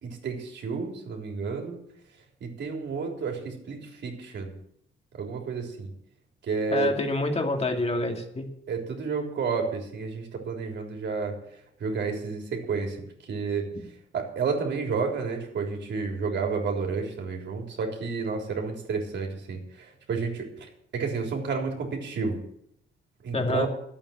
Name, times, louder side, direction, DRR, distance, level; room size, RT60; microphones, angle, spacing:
voice 1, 0.0-1.8 2.4-4.6 5.1-5.9 6.4-6.9 8.7-11.4 11.8-13.7 14.1-22.4 23.2-23.7, right 5 dB, 60° right, 2 dB, 3.7 m, -31 dB
voice 2, 6.7-8.5 23.3-23.7, left 2 dB, 30° left, 3 dB, 2.6 m, -27 dB
11.5 x 8.7 x 8.8 m, 0.72 s
cardioid pair, 90°, 20 cm